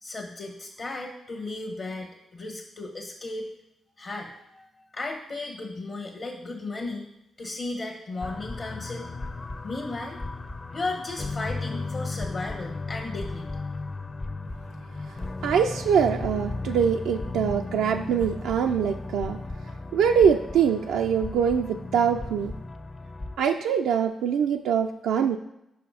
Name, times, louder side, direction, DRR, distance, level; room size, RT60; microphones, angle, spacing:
voice 1, 0.0-3.5 4.0-7.1 7.4-9.1 9.6-10.2 10.7-13.9, left 2 dB, 55° left, 0 dB, 1.0 m, -35 dB
sound 1, 8.2-23.4, left 3 dB, 40° left, 0.6 m, -35 dB
voice 2, 15.4-19.4 19.9-22.5 23.4-25.4, right 7 dB, 80° right, 4 dB, 0.3 m, -23 dB
4.9 x 4.9 x 4.9 m, 0.85 s
hypercardioid pair, 45°, 0 cm